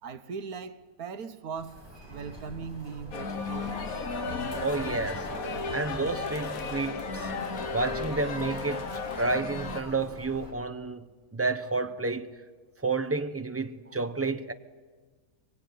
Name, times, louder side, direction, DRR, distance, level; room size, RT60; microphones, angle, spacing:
voice 1, 0.0-1.8 2.1-3.9, right 5 dB, 70° right, 1.6 m, -39 dB
Human voice, 1.6-10.5, right 1 dB, 15° left, 6.7 m, -44 dB
sound 1, 3.1-9.8, left 4 dB, 65° left, 1.8 m, -34 dB
voice 2, 4.6-5.3 5.7-7.3 7.7-8.9 9.2-11.1 11.3-12.3 12.8-14.5, right 3 dB, 15° right, 0.6 m, -30 dB
23.5 x 22.0 x 9.4 m
omnidirectional pair, 1.6 m